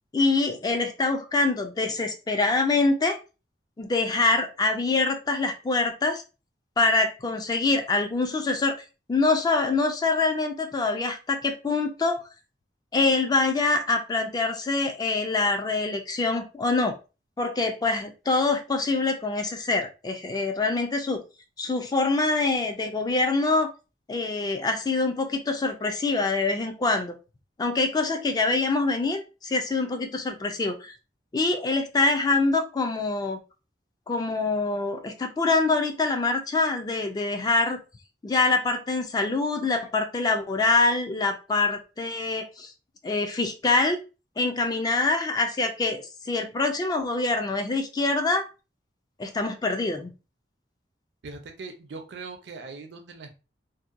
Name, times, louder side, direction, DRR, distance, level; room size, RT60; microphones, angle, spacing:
voice 1, 0.1-3.2 3.8-6.2 6.8-8.7 9.1-12.3 12.9-16.9 17.4-21.2 21.6-23.7 24.1-27.2 27.6-30.9 31.3-33.4 34.1-37.8 38.2-42.7 43.0-44.0 44.4-48.4 49.2-50.1, left 3 dB, 20° left, 4 dB, 0.3 m, -25 dB
voice 2, 51.2-53.3, right 4 dB, 70° right, 6 dB, 0.5 m, -40 dB
2.7 x 2.2 x 2.4 m, 0.31 s
head